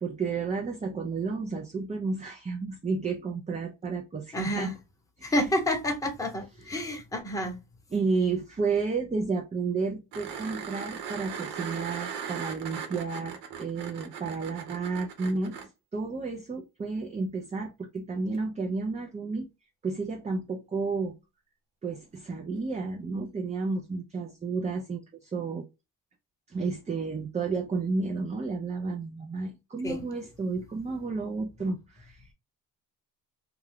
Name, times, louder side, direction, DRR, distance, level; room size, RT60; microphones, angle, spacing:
voice 1, 0.0-4.7 5.2-5.3 7.9-15.6 15.9-19.5 19.8-21.1 21.8-25.6 26.5-32.3, right 4 dB, 20° right, 0.4 m, -31 dB
voice 2, 4.3-4.7 5.2-7.6 29.8-30.1, left 1 dB, 10° left, 0.9 m, -29 dB
sound 1, 10.1-15.7 18.3-18.4, right 7 dB, 80° right, 1.0 m, -38 dB
2.3 x 2.3 x 3.4 m
supercardioid pair, 75°, 39 cm